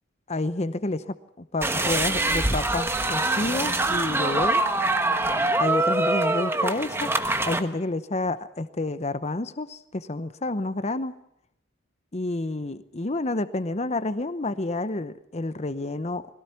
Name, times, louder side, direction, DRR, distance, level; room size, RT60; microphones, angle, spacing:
voice 1, 0.3-4.6 5.6-7.1 7.5-11.2 12.1-16.3, left 2 dB, 30° left, 13 dB, 0.8 m, -29 dB
sound 1, 1.6-7.6, right 2 dB, 10° right, 1.1 m, -24 dB
21.5 x 17.0 x 8.2 m, 0.76 s
head